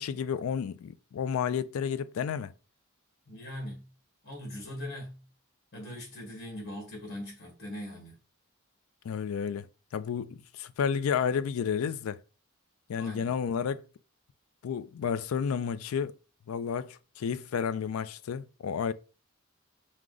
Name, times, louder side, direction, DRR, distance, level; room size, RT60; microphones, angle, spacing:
voice 1, 0.0-2.5 9.0-9.7 9.9-12.2 12.9-13.8 14.6-16.2 16.5-18.9, left 7 dB, 80° left, 0.3 m, -31 dB
voice 2, 3.3-3.9 4.2-5.2 5.7-8.2 13.0-13.3, left 1 dB, 50° left, 1.5 m, -41 dB
4.7 x 2.2 x 3.8 m
head